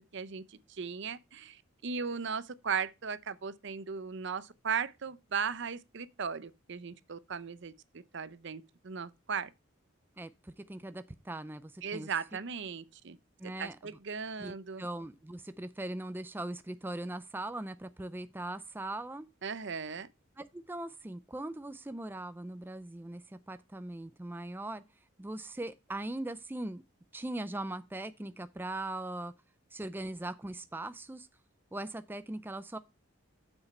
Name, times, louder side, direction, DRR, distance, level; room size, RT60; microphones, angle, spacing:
voice 1, 0.1-9.5 11.8-13.2 13.6-14.8 19.4-20.1, right 6 dB, 60° right, 0.6 m, -37 dB
voice 2, 10.2-12.1 13.4-13.8 14.4-19.3 20.4-24.8 25.2-26.8 27.1-29.3 29.7-31.3 31.7-32.8, right 1 dB, 10° right, 0.4 m, -40 dB
7.2 x 6.4 x 4.2 m
head